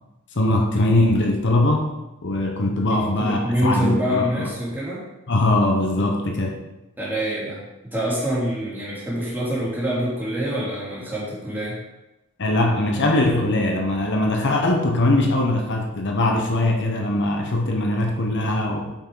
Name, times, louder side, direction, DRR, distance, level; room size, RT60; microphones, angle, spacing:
voice 1, 0.3-1.9 2.2-4.5 5.3-6.6 12.4-18.9, left 1 dB, 55° left, 2 dB, 0.9 m, -21 dB
voice 2, 2.9-5.0 7.0-11.8, equal, 10° right, -7 dB, 3.0 m, -26 dB
8.6 x 5.8 x 3.8 m, 0.99 s
head